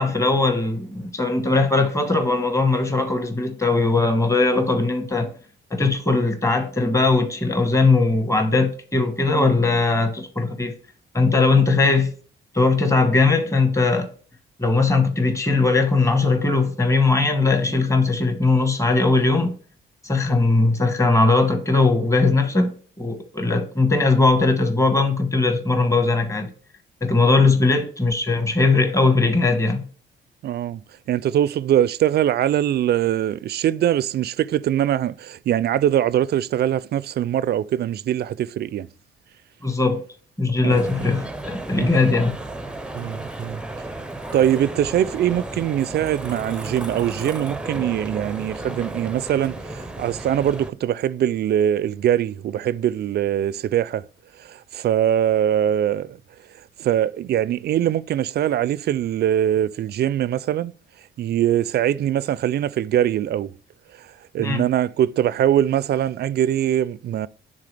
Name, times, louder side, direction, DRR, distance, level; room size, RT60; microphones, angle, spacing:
voice 1, 0.0-5.3 5.7-10.7 11.1-12.1 12.5-14.1 14.6-19.5 20.0-26.5 27.0-29.8 39.6-40.0 40.4-42.3 64.4-64.6, left 3 dB, 15° left, 1.3 m, -19 dB
voice 2, 30.4-30.8 31.1-38.9 40.6-40.8 41.7-42.0 42.9-43.6 44.3-54.0 54.4-56.2 56.8-60.7 61.2-63.5 64.0-64.1 64.3-67.3, right 11 dB, 55° right, 0.4 m, -22 dB
sound 1, 40.7-50.7, right 2 dB, 5° right, 0.6 m, -34 dB
9.8 x 3.7 x 3.3 m
cardioid pair, 90°, 20 cm